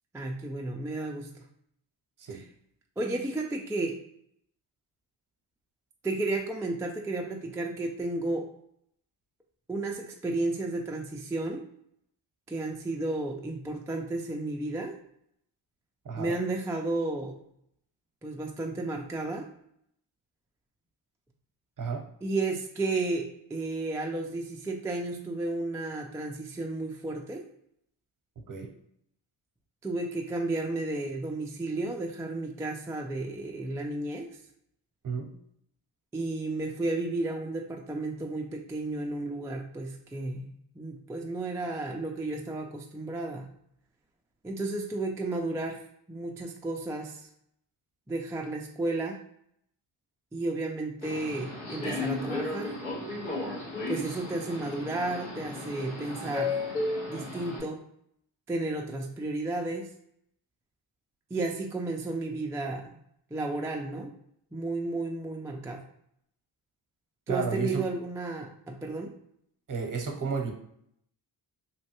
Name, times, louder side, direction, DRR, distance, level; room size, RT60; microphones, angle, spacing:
voice 1, 0.1-1.5 2.3-2.4 3.0-4.0 6.0-8.5 9.7-11.6 12.5-14.9 16.2-17.4 18.2-19.5 22.2-27.4 29.8-34.3 36.1-43.5 44.4-45.8 46.1-47.3 48.1-49.2 50.3-52.7 53.9-56.6 57.1-57.8 58.5-59.9 61.3-63.0 63.3-64.1 64.5-65.8 67.3-69.1, right 2 dB, 5° right, 1 dB, 0.3 m, -33 dB
voice 2, 16.0-16.4 21.8-22.1 28.5-28.7 35.0-35.3 67.3-67.9 69.7-70.5, right 5 dB, 40° right, 3 dB, 0.8 m, -32 dB
Subway metro underground, 51.0-57.6, left 3 dB, 80° left, 1.5 m, -34 dB
3.1 x 2.2 x 2.9 m, 0.72 s
cardioid pair, 60°, 47 cm